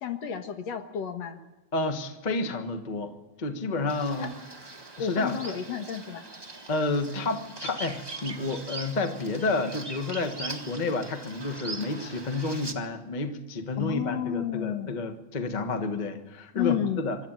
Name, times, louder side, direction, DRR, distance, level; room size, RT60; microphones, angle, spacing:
voice 1, 0.0-1.4 4.2-4.3 5.0-6.3 13.8-14.9 16.5-17.0, left 9 dB, 65° left, 7 dB, 2.5 m, -31 dB
voice 2, 1.7-3.1 3.4-4.3 5.0-5.6 6.7-17.2, left 3 dB, 45° left, 7 dB, 0.5 m, -30 dB
Bird vocalization bird call bird song, 3.9-12.7, right 3 dB, 35° right, 0.4 m, -41 dB
25.0 x 12.5 x 9.0 m, 1.1 s
omnidirectional pair, 3.4 m